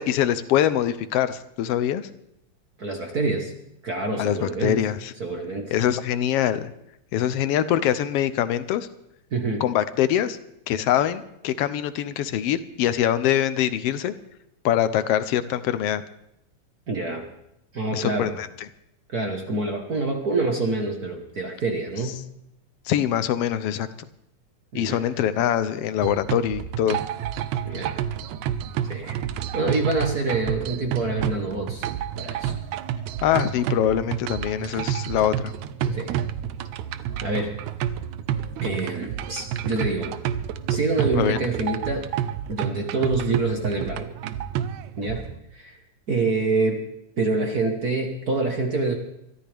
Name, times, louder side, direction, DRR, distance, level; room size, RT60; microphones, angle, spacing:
voice 1, 0.0-2.0 4.2-5.1 5.7-6.7 7.1-8.9 9.6-10.4 10.7-14.1 14.6-16.0 17.9-18.5 22.9-23.9 24.7-27.0 33.2-35.5 41.1-41.4, left 11 dB, 75° left, 13 dB, 1.5 m, -23 dB
voice 2, 2.8-3.5 3.8-4.8 5.2-5.8 9.3-9.6 16.9-17.3 17.7-18.4 19.1-22.2 24.7-25.0 27.6-27.9 28.8-29.2 29.5-31.9 32.2-32.5 35.8-36.1 37.2-37.6 38.6-40.2 40.7-42.1 42.5-44.1 45.0-45.2 45.5-45.8 46.1-46.8 47.2-48.9, right 3 dB, 45° right, 3 dB, 1.3 m, -26 dB
sound 1, 26.0-45.4, right 10 dB, 80° right, 2.0 m, -30 dB
23.5 x 14.0 x 3.5 m, 0.80 s
omnidirectional pair, 3.3 m